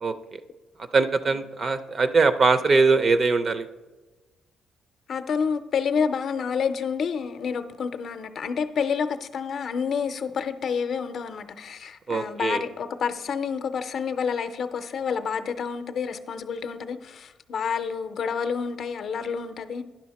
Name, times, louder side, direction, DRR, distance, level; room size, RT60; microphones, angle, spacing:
voice 1, 0.9-3.7 12.1-12.6, right 4 dB, 45° right, 0.5 m, -21 dB
voice 2, 5.1-19.8, left 6 dB, 60° left, 0.5 m, -29 dB
10.5 x 5.7 x 4.1 m
cardioid pair, 90°, 0 cm